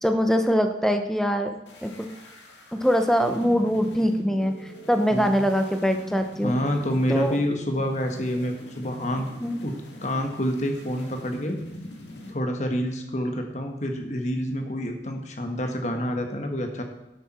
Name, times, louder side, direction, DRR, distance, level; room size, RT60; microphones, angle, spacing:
voice 1, 0.0-1.5 1.8-1.9 2.7-4.5 4.9-6.5 7.1-7.4 9.4-9.6, equal, ahead, 6 dB, 0.8 m, -23 dB
sound 1, 1.7-12.3, equal, 85° left, 2.3 m, -42 dB
voice 2, 6.4-9.2 9.6-9.7 10.0-11.6 12.3-16.8, equal, 40° left, 4 dB, 1.5 m, -28 dB
11.0 x 8.3 x 4.4 m, 1.0 s
head